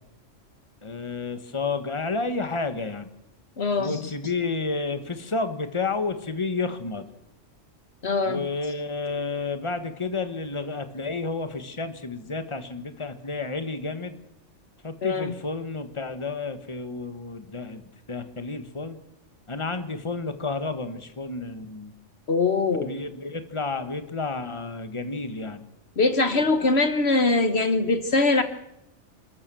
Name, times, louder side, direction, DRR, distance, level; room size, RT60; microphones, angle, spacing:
voice 1, 0.8-3.1 3.8-7.0 8.2-14.2 14.8-17.8 18.1-19.0 19.5-21.9 22.8-25.6, left 3 dB, 25° left, 9 dB, 1.6 m, -31 dB
voice 2, 3.6-4.0 8.0-8.4 15.0-15.3 22.3-22.9 26.0-28.4, left 3 dB, 60° left, 9 dB, 1.4 m, -22 dB
27.0 x 13.5 x 7.7 m, 0.86 s
omnidirectional pair, 1.3 m